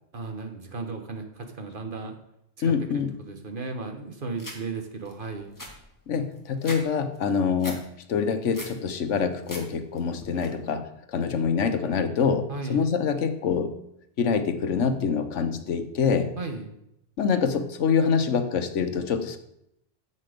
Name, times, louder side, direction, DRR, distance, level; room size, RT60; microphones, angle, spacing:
voice 1, 0.1-2.1 2.6-5.5 12.5-12.8 16.4-16.7, right 3 dB, 45° right, 5 dB, 1.4 m, -35 dB
voice 2, 2.6-3.1 6.1-7.8 8.1-13.7 14.2-16.3 17.2-19.4, left 6 dB, 85° left, 9 dB, 1.3 m, -25 dB
sound 1, 4.4-4.6 5.1-5.2 5.4-6.8 7.1-7.8 8.2-8.8 9.2-9.6 10.0-10.5, left 1 dB, 15° left, 1.7 m, -39 dB
9.8 x 7.5 x 5.1 m, 0.80 s
omnidirectional pair, 1.2 m